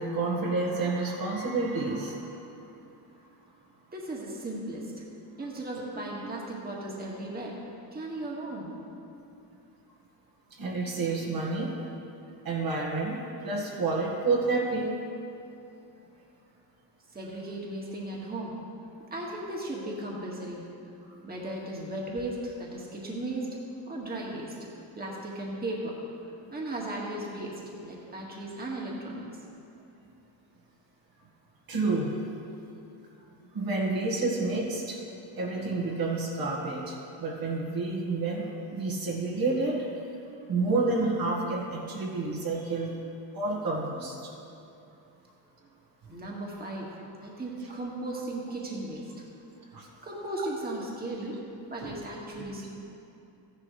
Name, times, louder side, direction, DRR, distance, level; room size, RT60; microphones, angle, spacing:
voice 1, 0.0-2.4 6.2-6.4 10.6-11.8 12.4-13.2 13.4-14.9 23.9-24.0 31.7-32.1 33.5-35.0 35.4-39.9 40.5-43.0 43.3-44.3 49.7-49.9 51.8-51.9, right 3 dB, 55° right, -2 dB, 1.9 m, -29 dB
voice 2, 3.9-5.0 5.4-7.6 7.9-8.7 17.1-18.6 19.1-20.6 21.2-23.6 23.9-24.6 25.0-25.9 26.2-29.4 46.1-46.9 47.2-49.3 50.0-51.4 51.7-52.7, right 1 dB, 20° right, -3 dB, 1.9 m, -36 dB
14.0 x 11.0 x 3.3 m, 2.7 s
cardioid pair, 115°, 43 cm